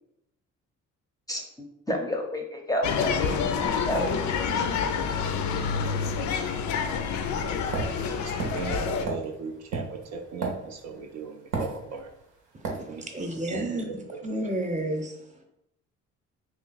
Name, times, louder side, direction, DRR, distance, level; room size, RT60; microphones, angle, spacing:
voice 1, 1.9-3.5 3.9-4.1 4.5-4.6, equal, 10° left, 0.6 m, -30 dB
sound 1, 2.8-9.1, left 6 dB, 70° left, 0.5 m, -28 dB
sound 2, 7.7-11.0 11.5-12.2 12.6-12.9, right 3 dB, 90° right, 0.8 m, -32 dB
voice 2, 8.0-12.1 12.9-13.0 13.5-14.0 14.3-14.4, right 5 dB, 60° right, 0.5 m, -37 dB
voice 3, 12.5-13.8 14.2-15.4, right 1 dB, 25° right, 0.7 m, -32 dB
3.0 x 2.4 x 4.0 m
cardioid pair, 90°, 30 cm